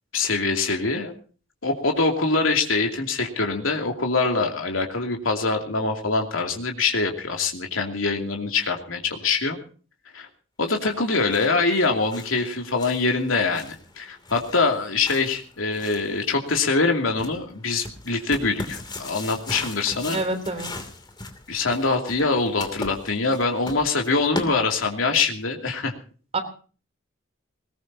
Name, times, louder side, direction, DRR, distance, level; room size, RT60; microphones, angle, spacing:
voice 1, 0.1-1.1 1.6-9.6 10.1-10.3 10.6-20.2 21.5-25.9, left 3 dB, 80° left, 2 dB, 2.7 m, -24 dB
sound 1, 10.9-25.1, left 2 dB, 20° left, 2.7 m, -39 dB
voice 2, 20.1-20.7 26.3-26.4, right 2 dB, 30° right, 7 dB, 3.2 m, -26 dB
21.5 x 20.0 x 2.8 m, 0.39 s
head